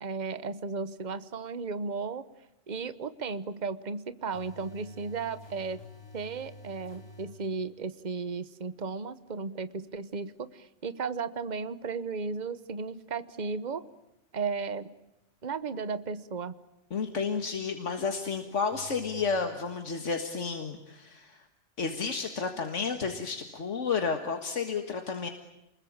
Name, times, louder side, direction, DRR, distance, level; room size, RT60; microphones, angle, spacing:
voice 1, 0.0-2.2 2.7-5.8 6.1-13.8 14.3-14.9 15.4-16.6, right 4 dB, 40° right, 14 dB, 1.2 m, -35 dB
sound 1, 2.8-2.9 4.3-7.4 18.7-19.4, left 2 dB, 20° left, 5.8 m, -49 dB
voice 2, 16.9-21.4 21.8-25.3, left 5 dB, 80° left, 6 dB, 2.0 m, -31 dB
29.0 x 21.5 x 8.7 m, 0.90 s
omnidirectional pair, 1.2 m